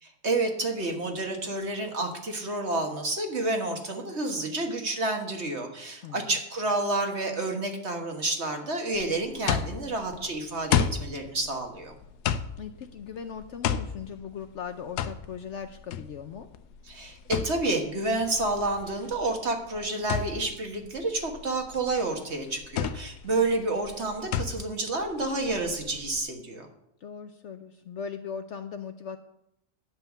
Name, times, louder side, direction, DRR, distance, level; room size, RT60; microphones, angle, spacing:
voice 1, 0.0-11.9 16.9-26.7, right 2 dB, 45° right, 3 dB, 1.6 m, -29 dB
sound 1, 8.9-26.2, left 8 dB, 85° left, 1.2 m, -33 dB
voice 2, 12.6-16.5 27.0-29.2, left 7 dB, 65° left, 9 dB, 0.7 m, -39 dB
10.5 x 5.6 x 8.2 m, 0.80 s
omnidirectional pair, 1.7 m